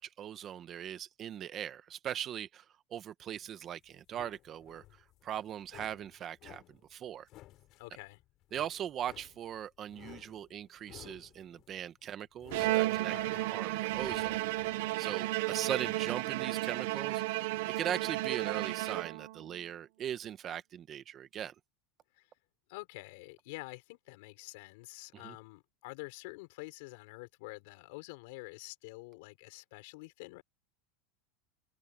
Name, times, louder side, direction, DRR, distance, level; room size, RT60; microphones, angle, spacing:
voice 1, 0.0-2.6 2.9-4.8 5.2-7.3 8.5-14.4 15.0-17.2 17.6-21.5 25.1-25.3, right 10 dB, 25° right, 1.1 m, -40 dB
sound 1, 3.3-15.0, left 16 dB, 40° left, 5.6 m, -56 dB
voice 2, 7.7-8.2 13.1-13.5 22.1-22.3 22.7-30.4, left 25 dB, 65° left, 4.8 m, -47 dB
Bowed string instrument, 12.5-19.5, right 18 dB, 65° right, 0.9 m, -33 dB
open air
supercardioid pair, 165°, 0 cm